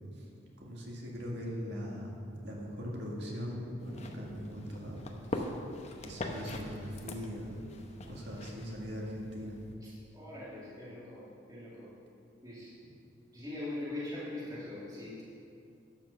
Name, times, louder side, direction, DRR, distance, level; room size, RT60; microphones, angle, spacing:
voice 1, 0.6-2.2 2.4-5.0 5.3-5.4 6.0-7.7 8.1-9.6, equal, 60° right, -3 dB, 1.9 m, -40 dB
sound 1, 3.8-9.7, left 1 dB, 35° left, 0.8 m, -43 dB
voice 2, 9.8-11.9 12.4-12.7 13.3-15.2, left 2 dB, 20° right, -9 dB, 2.3 m, -42 dB
12.0 x 5.9 x 6.8 m, 2.5 s
head